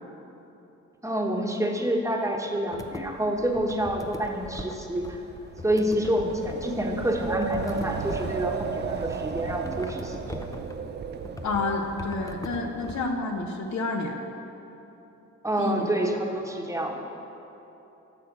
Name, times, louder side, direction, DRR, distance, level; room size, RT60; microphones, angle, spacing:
voice 1, 1.0-5.2 5.6-10.5 15.4-16.9, right 1 dB, 10° right, 1 dB, 1.1 m, -28 dB
sound 1, 2.7-3.1 3.5-4.8 5.0-7.0 7.3-8.8 9.5-10.8 11.2-11.7 12.0-13.0, left 2 dB, 10° left, 0.5 m, -41 dB
Wind, 3.1-13.1, right 5 dB, 35° right, 0.5 m, -36 dB
voice 2, 11.4-14.2 15.6-15.9, left 3 dB, 65° left, 2 dB, 1.0 m, -29 dB
8.2 x 7.3 x 6.1 m, 3.0 s
cardioid pair, 90°, 30 cm